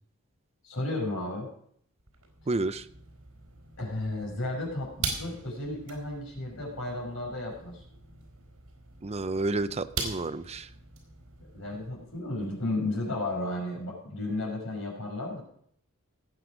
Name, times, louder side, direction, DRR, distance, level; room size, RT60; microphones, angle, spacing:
voice 1, 0.6-1.5 3.8-7.8 11.5-15.4, left 2 dB, 65° left, -1 dB, 5.8 m, -33 dB
sound 1, 2.0-12.5, right 3 dB, 75° right, 4.2 m, -42 dB
voice 2, 2.5-2.8 9.0-10.7, right 2 dB, 30° right, 11 dB, 0.6 m, -30 dB
18.5 x 7.8 x 5.1 m, 0.65 s
head